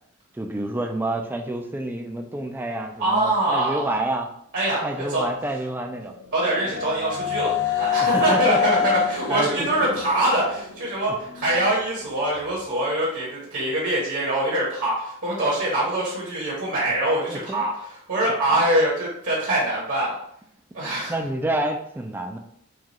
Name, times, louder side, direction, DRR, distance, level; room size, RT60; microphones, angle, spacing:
voice 1, 0.3-4.3 4.8-6.1 8.0-8.9 9.3-9.7 17.3-17.6 18.2-18.3 21.1-22.4, right 1 dB, 10° right, 4 dB, 0.3 m, -28 dB
voice 2, 3.0-3.8 4.5-5.2 6.3-20.2 20.7-21.1, right 1 dB, 65° right, -5 dB, 1.2 m, -24 dB
sound 1, 5.8-11.7, left 8 dB, 90° left, 0.5 m, -27 dB
4.7 x 2.3 x 2.9 m, 0.69 s
head